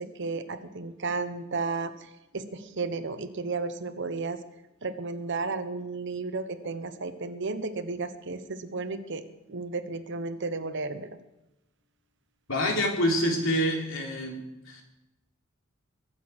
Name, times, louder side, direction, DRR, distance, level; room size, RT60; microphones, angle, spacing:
voice 1, 0.0-4.4 4.8-9.2 9.5-11.1, right 3 dB, 60° right, 10 dB, 1.1 m, -33 dB
voice 2, 12.5-14.8, equal, 70° left, 1 dB, 3.3 m, -27 dB
22.5 x 8.0 x 6.3 m, 0.97 s
head